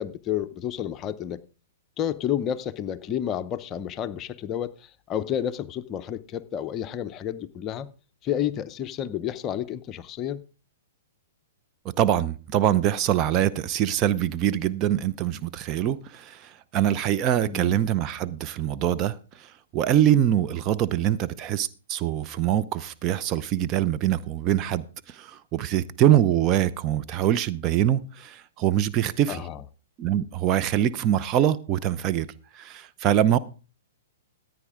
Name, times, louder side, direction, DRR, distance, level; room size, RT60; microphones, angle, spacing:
voice 1, 0.0-1.4 2.0-7.9 8.2-10.4 17.4-17.8 29.3-29.6, left 10 dB, 30° left, 0.7 m, -30 dB
voice 2, 12.0-29.4 30.0-32.3 32.5-33.4, right 11 dB, 35° right, 0.7 m, -24 dB
14.0 x 9.3 x 3.7 m
hypercardioid pair, 125°, 0 cm